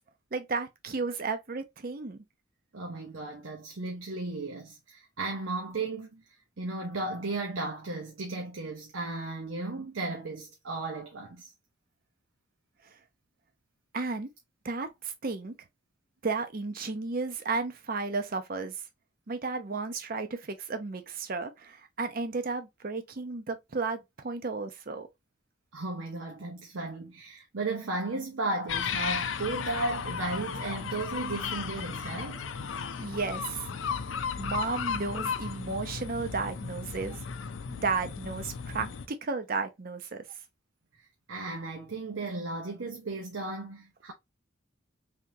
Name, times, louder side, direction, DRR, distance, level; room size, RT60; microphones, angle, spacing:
voice 1, 0.3-2.2 13.9-14.3 14.6-15.5 16.2-18.7 19.3-25.1 33.0-33.7 34.4-37.2 37.7-40.2, right 4 dB, 45° right, 0.6 m, -33 dB
voice 2, 2.7-6.2 6.6-11.5 25.7-32.4 41.3-44.1, right 2 dB, 85° right, 0.7 m, -35 dB
sound 1, 28.7-39.1, left 6 dB, 80° left, 0.5 m, -35 dB
3.5 x 2.8 x 2.6 m
head